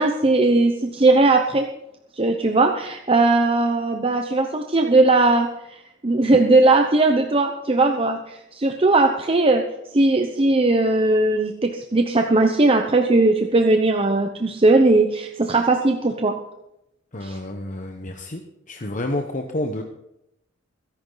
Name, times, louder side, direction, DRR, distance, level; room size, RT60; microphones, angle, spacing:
voice 1, 0.0-1.7 2.2-9.6 9.9-16.4 17.2-17.4, right 2 dB, 30° right, 5 dB, 0.9 m, -18 dB
voice 2, 17.1-18.4 18.7-19.8, left 1 dB, 40° left, 4 dB, 1.1 m, -29 dB
22.5 x 10.5 x 4.0 m, 0.84 s
head